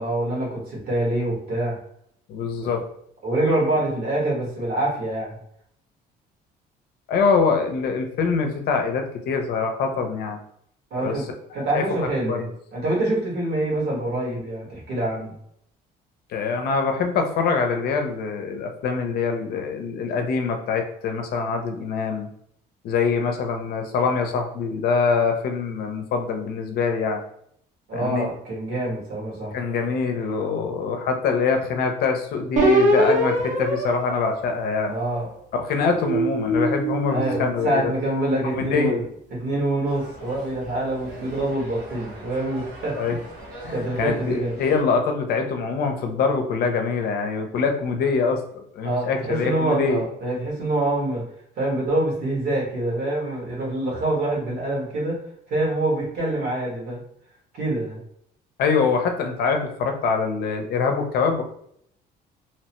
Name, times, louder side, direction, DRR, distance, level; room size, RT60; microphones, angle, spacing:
voice 1, 0.0-1.8 2.6-2.7 3.2-5.4 10.9-12.4 12.7-15.3 27.9-29.5 34.8-35.3 37.1-39.0 39.3-43.2 43.7-44.6 48.8-51.2 51.6-55.2 55.5-57.0 57.5-58.0, right 1 dB, 70° right, -4 dB, 1.5 m, -25 dB
voice 2, 2.3-2.9 7.1-10.4 11.0-11.2 11.5-11.8 12.3-12.5 16.3-22.3 22.8-27.2 27.9-28.3 29.5-35.0 35.5-37.8 38.5-39.0 43.0-43.2 43.6-50.0 58.6-61.4, left 5 dB, 65° left, 4 dB, 0.5 m, -24 dB
sound 1, 32.6-35.2 35.8-38.3, right 1 dB, 50° right, 0.8 m, -24 dB
sound 2, 39.8-44.8, right 1 dB, 90° right, 1.1 m, -41 dB
2.9 x 2.1 x 2.9 m, 0.70 s
cardioid pair, 110°, 17 cm